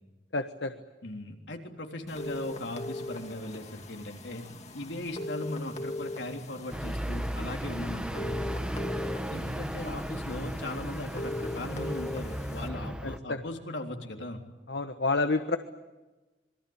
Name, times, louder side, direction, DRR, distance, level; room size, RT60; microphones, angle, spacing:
voice 1, 0.3-0.7 14.7-15.6, left 3 dB, 75° left, 8 dB, 1.3 m, -28 dB
voice 2, 1.0-4.4 4.7-8.4 9.3-14.4, left 1 dB, 90° left, 3 dB, 3.7 m, -38 dB
sound 1, 2.1-12.7, left 1 dB, 40° left, 2.5 m, -40 dB
sound 2, 6.7-13.2, equal, 5° right, 1.2 m, -35 dB
26.5 x 23.0 x 8.9 m, 1.2 s
head